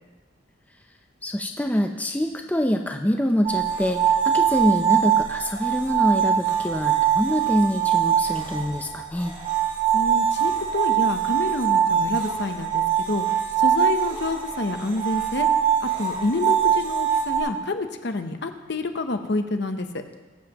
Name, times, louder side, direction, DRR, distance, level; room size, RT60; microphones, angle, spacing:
voice 1, 1.2-9.3, equal, 10° left, 4 dB, 0.5 m, -25 dB
sound 1, 3.4-17.4, right 9 dB, 30° right, 2.4 m, -22 dB
voice 2, 9.9-15.5 15.8-20.0, left 2 dB, 60° left, 7 dB, 0.8 m, -28 dB
20.5 x 7.3 x 3.0 m, 1.2 s
head